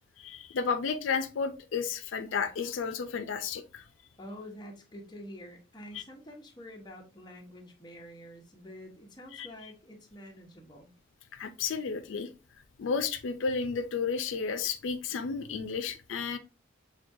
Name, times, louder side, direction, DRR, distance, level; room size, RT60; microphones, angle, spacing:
voice 1, 0.2-3.8 5.9-6.0 9.3-9.5 11.3-12.3 12.8-16.4, left 5 dB, 90° left, 0.4 m, -32 dB
voice 2, 4.2-10.9, equal, 20° left, 0.8 m, -47 dB
5.9 x 2.3 x 2.6 m
head